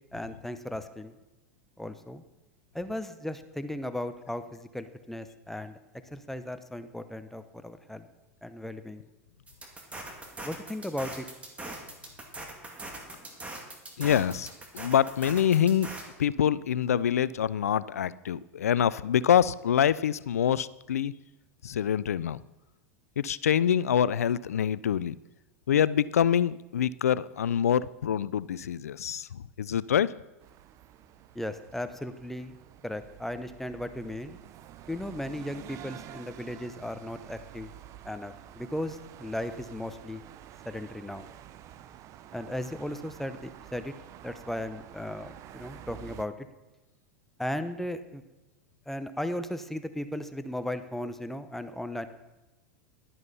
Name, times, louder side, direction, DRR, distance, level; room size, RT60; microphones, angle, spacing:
voice 1, 0.1-1.1 1.8-2.2 2.7-5.8 6.1-8.1 8.4-9.1 10.4-11.3 31.3-32.6 32.8-34.4 34.9-37.7 38.0-40.2 40.6-41.2 42.3-43.9 44.2-46.5 47.4-48.2 48.9-52.1, left 1 dB, 5° left, 10 dB, 0.8 m, -36 dB
sound 1, 9.5-16.0, right 2 dB, 15° right, 2.3 m, -41 dB
voice 2, 14.0-14.5 14.7-15.9 16.2-21.1 21.6-22.4 23.2-25.2 25.7-30.1, left 9 dB, 85° left, 19 dB, 0.3 m, -25 dB
sound 2, 30.4-46.3, right 12 dB, 40° right, 0.6 m, -49 dB
11.5 x 11.0 x 4.1 m, 1.0 s
hypercardioid pair, 100°, 8 cm